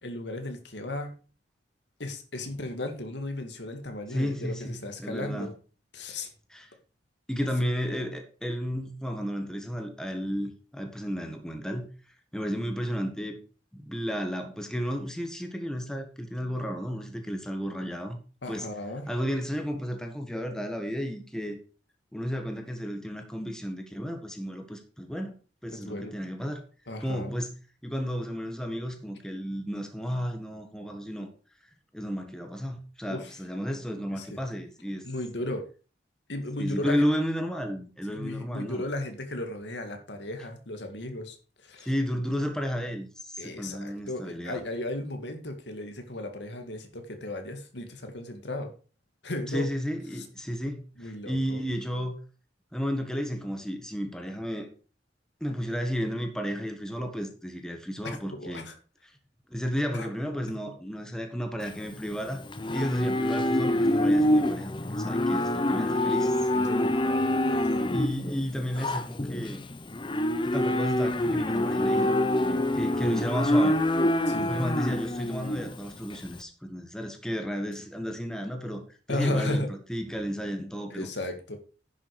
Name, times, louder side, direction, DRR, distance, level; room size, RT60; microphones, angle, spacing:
voice 1, 0.0-1.2 2.0-5.5 5.9-6.3 7.4-7.5 18.4-19.1 25.7-26.1 26.9-27.3 33.1-33.3 34.1-34.3 35.0-35.6 36.3-37.0 38.1-41.9 43.4-48.7 49.2-49.7 51.0-51.6 58.0-58.7 59.9-60.1 66.2-67.9 74.3-74.6 79.1-79.7 80.9-81.6, left 1 dB, 75° left, 6 dB, 2.1 m, -35 dB
voice 2, 4.1-5.5 6.5-6.6 7.3-11.9 12.3-13.4 13.7-18.2 18.5-18.7 19.1-21.6 22.1-25.3 25.6-26.6 27.0-27.5 27.8-31.3 31.9-35.1 36.6-38.8 41.8-44.6 49.5-52.1 52.7-54.7 55.4-58.7 59.0-59.1 59.5-62.4 62.7-66.3 67.9-69.6 70.4-73.8 74.5-78.8 79.1-81.1, equal, 5° left, 4 dB, 1.6 m, -32 dB
Livestock farm animals working animals, 61.6-76.4, left 1 dB, 25° left, 0.8 m, -26 dB
10.5 x 7.6 x 4.9 m, 0.36 s
head